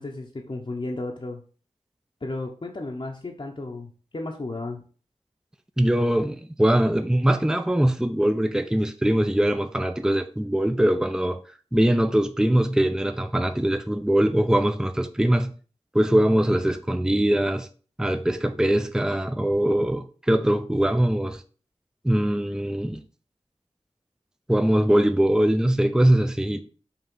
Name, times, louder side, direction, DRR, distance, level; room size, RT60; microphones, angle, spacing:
voice 1, 0.0-1.4 2.2-4.8, left 2 dB, 45° left, 0.8 m, -33 dB
voice 2, 5.8-11.4 11.7-15.5 15.9-17.7 18.0-21.4 22.0-23.0 24.5-26.6, right 1 dB, 5° right, 0.5 m, -22 dB
5.8 x 3.1 x 5.4 m
wide cardioid pair, 65°, 12 cm